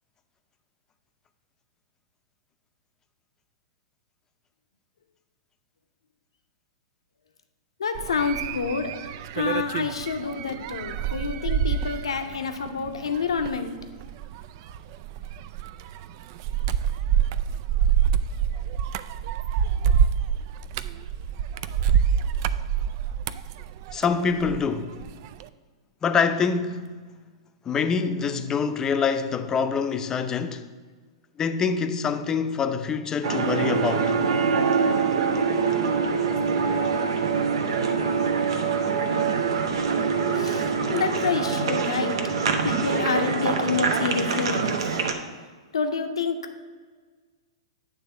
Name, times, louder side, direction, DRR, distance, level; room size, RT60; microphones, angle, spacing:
voice 1, 7.8-13.7 40.3-42.2 42.6-44.8 45.7-46.4, left 5 dB, 80° left, 0.8 m, -28 dB
sound 1, 8.0-24.7 25.0-25.5, right 8 dB, 50° right, 0.3 m, -26 dB
voice 2, 23.9-25.0 26.0-27.0 27.6-30.7 31.4-34.2, left 5 dB, 20° left, 0.6 m, -25 dB
sound 2, 33.2-45.1, right 5 dB, 65° right, 0.9 m, -24 dB
9.4 x 3.5 x 6.9 m
hypercardioid pair, 110°, 3 cm